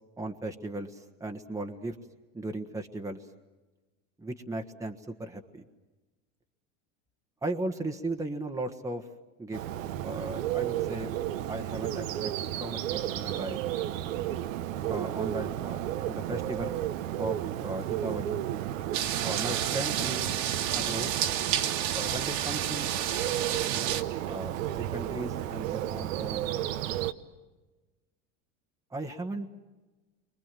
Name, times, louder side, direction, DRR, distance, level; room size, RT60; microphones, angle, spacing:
voice 1, 0.2-2.0 2.3-3.2 4.2-5.6 7.4-9.1 9.4-9.7 10.0-11.1 11.5-12.3 12.6-13.6 14.9-16.8 17.2-18.4 19.2-20.4 20.7-21.1 21.9-22.9 23.7-26.5 28.9-29.5, right 2 dB, 10° right, 4 dB, 1.4 m, -36 dB
Bird, 9.5-27.1, right 12 dB, 85° right, 1.2 m, -33 dB
sound 1, 18.9-24.0, right 10 dB, 60° right, 2.1 m, -31 dB
30.0 x 24.5 x 7.7 m, 1.2 s
supercardioid pair, 115°, 38 cm